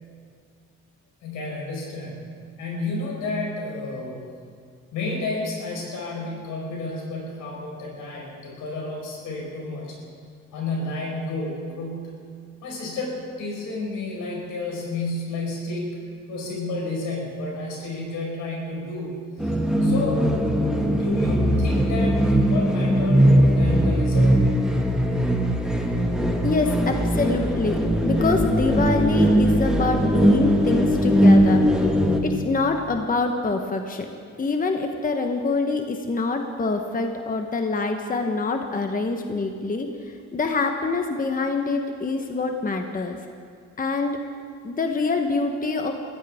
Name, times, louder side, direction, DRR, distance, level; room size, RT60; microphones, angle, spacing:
voice 1, 1.2-2.3 2.6-4.2 4.9-10.0 10.5-12.2 12.6-19.5 19.8-20.3 20.8-24.3, left 2 dB, 85° left, -2 dB, 4.9 m, -31 dB
sound 1, 19.4-32.2, equal, ahead, 1.7 m, -20 dB
voice 2, 26.4-31.9 32.2-39.9 40.3-43.2 43.8-44.2 44.6-45.9, left 3 dB, 30° left, 4 dB, 1.1 m, -25 dB
21.5 x 15.5 x 3.6 m, 2.1 s
cardioid pair, 90°, 30 cm